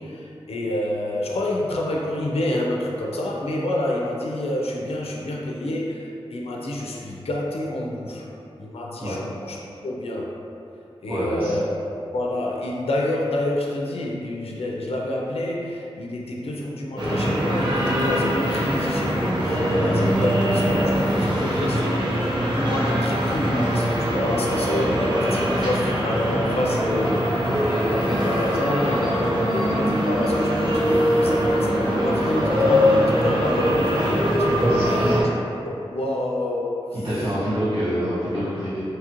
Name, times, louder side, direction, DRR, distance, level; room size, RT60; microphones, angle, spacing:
voice 1, 0.0-8.3 8.6-10.3 11.0-11.8 12.1-36.8, left 1 dB, 70° left, -2 dB, 0.4 m, -28 dB
voice 2, 11.1-11.5 19.7-19.8 34.6-35.2 37.0-38.8, equal, 60° right, -15 dB, 1.2 m, -26 dB
sound 1, 17.0-35.2, equal, 45° right, 0.8 m, -22 dB
2.8 x 2.4 x 2.9 m, 2.7 s
cardioid pair, 45°, 11 cm